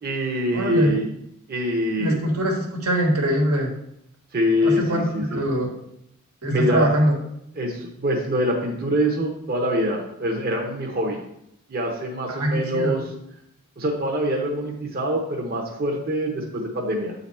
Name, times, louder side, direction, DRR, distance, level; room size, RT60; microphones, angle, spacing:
voice 1, 0.0-1.1 1.5-2.2 4.3-5.4 6.5-6.9 7.6-11.2 11.7-13.0 13.8-17.1, equal, 45° right, 0 dB, 0.9 m, -24 dB
voice 2, 0.5-1.0 2.0-3.7 4.6-5.7 6.4-7.1 12.3-13.0, equal, 90° right, 0 dB, 1.6 m, -22 dB
8.6 x 4.0 x 4.2 m, 0.78 s
head